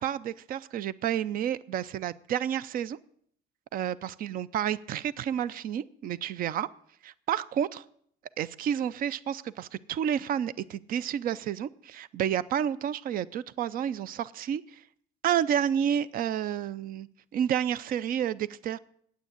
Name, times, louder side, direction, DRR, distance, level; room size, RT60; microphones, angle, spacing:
voice 1, 0.0-3.0 3.7-6.7 7.0-7.8 8.4-14.8 15.2-18.8, right 9 dB, 55° right, 19 dB, 0.5 m, -30 dB
9.0 x 8.2 x 9.5 m, 0.65 s
cardioid pair, 110°, 17 cm